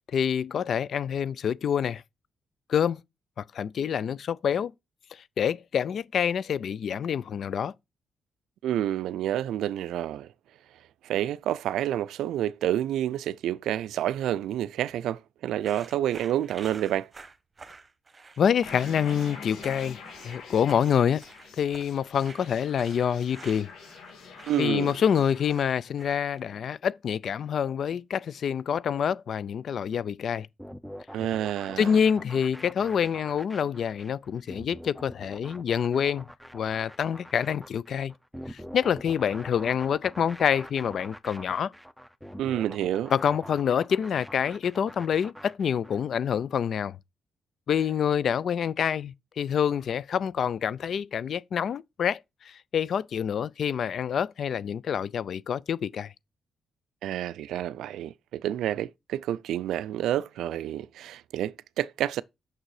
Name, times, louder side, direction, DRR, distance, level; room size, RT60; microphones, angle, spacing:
voice 1, 0.1-2.0 2.7-3.0 3.4-4.7 5.1-7.7 18.4-20.0 20.2-21.2 21.6-23.7 24.6-30.5 31.8-36.3 36.5-38.1 38.5-41.7 43.1-47.0 47.7-56.1, left 8 dB, 65° left, 0.4 m, -27 dB
voice 2, 8.6-10.3 11.0-17.1 24.5-24.9 31.1-31.9 42.4-43.1 57.0-62.2, right 12 dB, 85° right, 0.3 m, -29 dB
sound 1, 15.6-26.4, right 4 dB, 35° right, 1.0 m, -49 dB
sound 2, 18.6-25.6, left 5 dB, 85° left, 2.0 m, -45 dB
sound 3, 30.6-46.0, equal, ahead, 0.7 m, -44 dB
6.4 x 6.1 x 4.8 m
cardioid pair, 80°, 0 cm